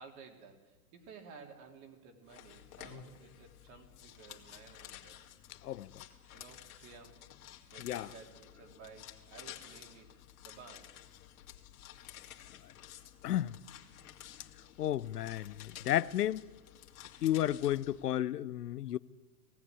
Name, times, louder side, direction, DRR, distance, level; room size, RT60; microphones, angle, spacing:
voice 1, 0.0-5.2 6.3-11.0 13.0-13.1, right 5 dB, 40° right, 3.5 m, -55 dB
sound 1, 2.3-18.1, left 11 dB, 65° left, 2.6 m, -53 dB
voice 2, 5.6-6.0 7.8-8.1 12.6-12.7 13.2-13.6 14.8-16.5 17.2-19.0, left 12 dB, 85° left, 0.8 m, -33 dB
18.0 x 16.0 x 9.8 m
hypercardioid pair, 125°, 46 cm